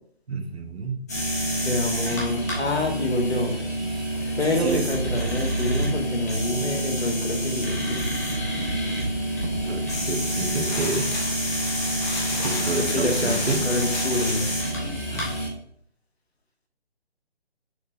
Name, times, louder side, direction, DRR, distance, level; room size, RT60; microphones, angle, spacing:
voice 1, 0.3-1.0 4.5-5.0 9.4-11.1 12.3-13.7 15.1-15.3, right 3 dB, 75° right, 5 dB, 0.9 m, -29 dB
sound 1, 1.1-15.5, right 1 dB, 15° left, 0.7 m, -27 dB
voice 2, 1.6-3.6 4.4-8.0 12.8-14.5, left 2 dB, 75° left, 2 dB, 1.3 m, -27 dB
sound 2, 9.9-14.8, left 3 dB, 45° left, 0.9 m, -35 dB
6.2 x 2.2 x 3.5 m, 0.69 s
figure-of-eight pair, 155°, 32 cm